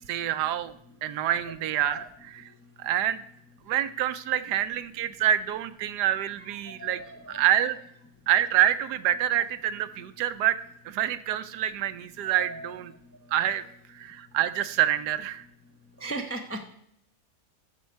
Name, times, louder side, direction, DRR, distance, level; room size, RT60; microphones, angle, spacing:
voice 1, 0.1-0.7 1.0-2.0 2.8-3.2 3.7-7.0 7.3-7.8 8.3-12.9 13.3-13.6 13.9-15.4, right 11 dB, 80° right, 12 dB, 1.2 m, -26 dB
voice 2, 1.5-2.1 6.4-7.4 12.2-12.7 16.0-16.7, right 2 dB, 20° left, 4 dB, 0.3 m, -39 dB
13.5 x 5.3 x 4.5 m, 0.73 s
omnidirectional pair, 1.8 m